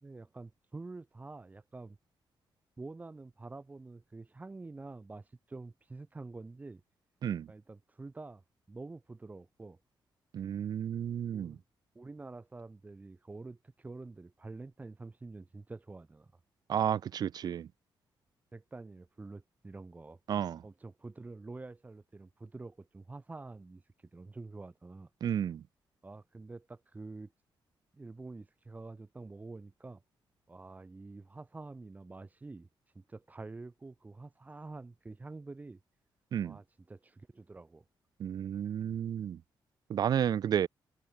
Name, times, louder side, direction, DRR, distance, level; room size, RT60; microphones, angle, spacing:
voice 1, 0.0-2.0 2.8-6.8 7.5-8.4 8.7-9.8 11.3-11.6 11.9-16.3 18.5-20.2 20.6-23.8 24.1-25.1 26.0-27.3 27.9-30.0 30.5-32.7 32.9-35.8 36.4-37.8 38.8-39.0, right 3 dB, 20° right, 2.4 m, -47 dB
voice 2, 10.3-11.6 16.7-17.7 20.3-20.6 25.2-25.6 36.3-36.6 38.2-39.4 39.9-40.7, right 9 dB, 55° right, 0.4 m, -32 dB
wide cardioid pair, 160°, 8 cm